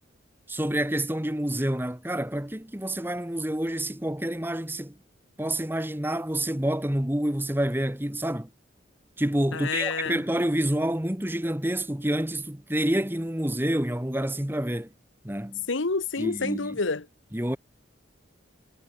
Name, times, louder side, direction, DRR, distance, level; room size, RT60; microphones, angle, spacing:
voice 1, 0.5-5.0 5.4-8.5 9.2-14.9 15.2-15.6 16.2-16.8 17.3-17.6, right 1 dB, 10° right, 1.3 m, -28 dB
voice 2, 9.5-10.2 15.7-17.1, left 4 dB, 75° left, 1.2 m, -28 dB
head